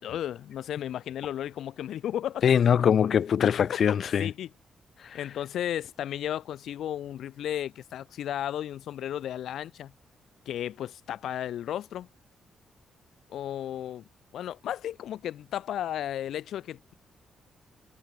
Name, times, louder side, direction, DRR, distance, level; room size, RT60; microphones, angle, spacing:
voice 1, 0.0-2.4 3.4-3.7 4.2-4.5 5.1-9.9 10.5-12.1 13.3-14.0 14.3-16.9, left 11 dB, 80° left, 5.3 m, -34 dB
voice 2, 2.4-4.3 5.0-5.2, left 8 dB, 50° left, 4.0 m, -23 dB
wide cardioid pair, 170°, 0 cm